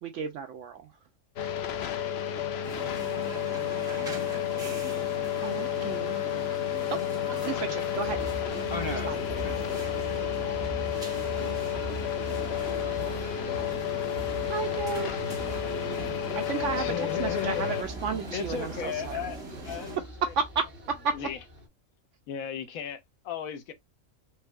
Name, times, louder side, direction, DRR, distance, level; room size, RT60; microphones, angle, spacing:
voice 1, 0.0-0.9 2.4-2.5 5.4-6.1 6.9-7.0 7.4-8.2 9.1-9.2 14.4-15.1 16.3-19.3 20.4-20.6 21.0-21.1, right 5 dB, 70° right, 0.8 m, -33 dB
sound 1, 1.4-17.8, left 11 dB, 65° left, 0.7 m, -31 dB
sound 2, 2.6-20.0, right 2 dB, 5° right, 1.6 m, -41 dB
sound 3, 8.0-21.7, equal, 45° right, 1.7 m, -41 dB
voice 2, 8.7-9.6 9.8-10.3 10.6-11.7, left 2 dB, 25° left, 0.8 m, -40 dB
voice 3, 16.8-17.7 18.3-20.0 21.1-21.4 22.3-23.7, left 8 dB, 80° left, 1.2 m, -35 dB
4.5 x 2.7 x 2.3 m
omnidirectional pair, 1.4 m